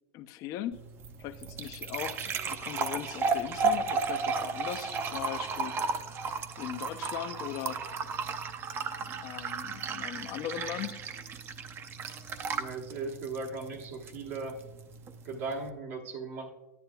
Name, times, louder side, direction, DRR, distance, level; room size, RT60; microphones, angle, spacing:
voice 1, 0.1-0.8 1.2-5.7 6.6-7.8 9.2-11.0, left 11 dB, 45° left, 10 dB, 0.5 m, -39 dB
sound 1, 0.7-15.7, right 4 dB, 30° right, 0.6 m, -34 dB
voice 2, 12.5-14.6 15.2-16.5, right 3 dB, 65° right, -1 dB, 1.2 m, -37 dB
10.0 x 9.6 x 2.2 m, 1.1 s
supercardioid pair, 120°, 8 cm